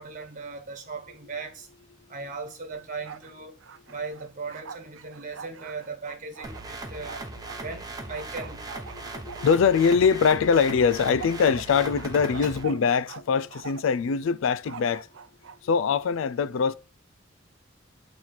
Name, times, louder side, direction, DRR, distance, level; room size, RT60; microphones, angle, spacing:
voice 1, 0.0-1.7 2.1-3.5 3.9-7.2 7.6-8.6 12.4-12.6, right 4 dB, 40° right, 1.3 m, -38 dB
Bark, 2.7-3.3 3.6-7.6 8.1-9.9 10.2-13.2 13.5-14.0 14.6-15.6, right 6 dB, 70° right, 0.5 m, -43 dB
sound 1, 6.4-12.6, right 2 dB, 20° right, 0.8 m, -38 dB
voice 2, 9.2-15.1 15.6-16.7, left 6 dB, 70° left, 0.4 m, -23 dB
7.1 x 3.1 x 5.8 m
head